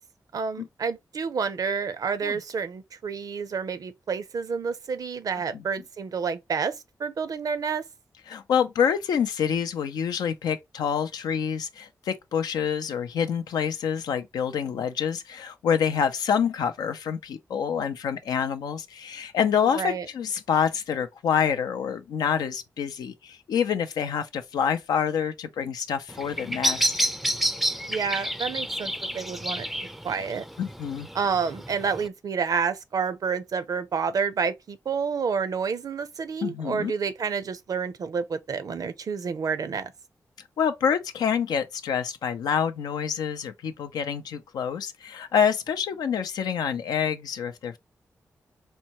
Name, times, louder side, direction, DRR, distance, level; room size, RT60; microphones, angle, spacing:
voice 1, 0.3-7.9 19.7-20.1 27.9-30.4 31.1-39.9, right 6 dB, 65° right, 0.5 m, -29 dB
voice 2, 8.3-26.9 30.6-31.1 36.4-36.9 40.6-47.8, left 7 dB, 85° left, 0.4 m, -27 dB
Bird vocalization bird call bird song, 26.1-32.1, right 1 dB, ahead, 0.4 m, -29 dB
4.2 x 2.1 x 2.9 m
supercardioid pair, 40°, 7 cm